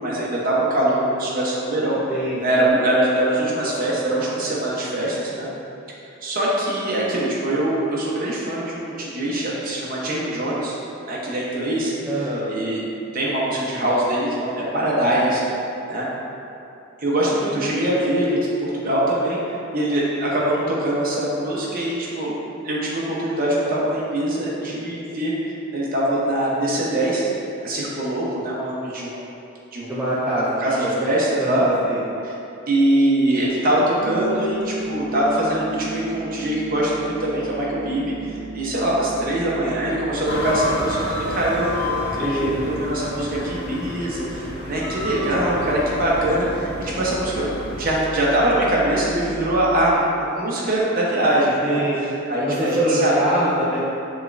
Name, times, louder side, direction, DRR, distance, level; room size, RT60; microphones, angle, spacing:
voice 1, 0.0-2.0 2.4-5.5 6.2-10.8 11.1-11.9 12.5-12.8 13.1-15.4 15.9-16.1 17.0-22.3 22.6-25.3 25.7-29.2 29.7-29.9 30.6-31.6 32.2-32.3 32.7-51.8 52.3-53.2, right 1 dB, 45° right, -6 dB, 0.9 m, -23 dB
voice 2, 2.1-2.7 12.1-12.5 17.5-17.8 24.6-24.8 29.9-30.9 31.4-32.0 42.2-42.7 51.6-52.1 52.4-53.8, right 1 dB, 5° right, -10 dB, 0.4 m, -24 dB
sound 1, 34.0-49.9, right 2 dB, 75° right, 0.6 m, -36 dB
sound 2, 40.2-48.0, left 2 dB, 50° left, 0.6 m, -30 dB
5.5 x 3.1 x 2.5 m, 2.7 s
head